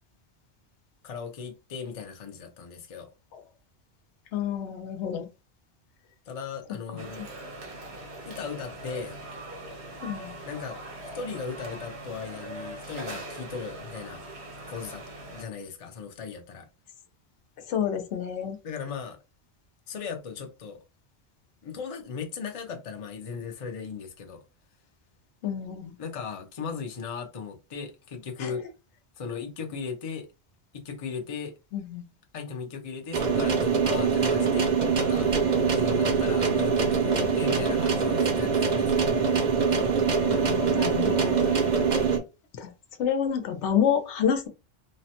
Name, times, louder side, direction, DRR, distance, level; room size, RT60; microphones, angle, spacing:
voice 1, 1.0-3.1 6.3-7.2 8.2-9.2 10.5-10.8 11.1-14.2 14.7-15.0 15.3-16.7 18.6-19.2 19.9-20.8 21.6-24.4 26.0-28.6 29.2-30.3 30.7-31.5 32.3-35.3 35.7-39.1, left 6 dB, 40° left, 0.5 m, -37 dB
voice 2, 4.3-5.3 6.9-7.3 10.0-10.4 17.7-18.6 25.4-25.9 28.4-28.5 31.7-32.0 40.3-41.4 42.6-42.7 43.0-44.5, left 8 dB, 85° left, 0.9 m, -29 dB
sound 1, 7.0-15.4, right 2 dB, 70° right, 1.1 m, -41 dB
sound 2, 33.1-42.2, right 5 dB, 50° right, 0.6 m, -24 dB
3.1 x 2.1 x 2.8 m
omnidirectional pair, 1.1 m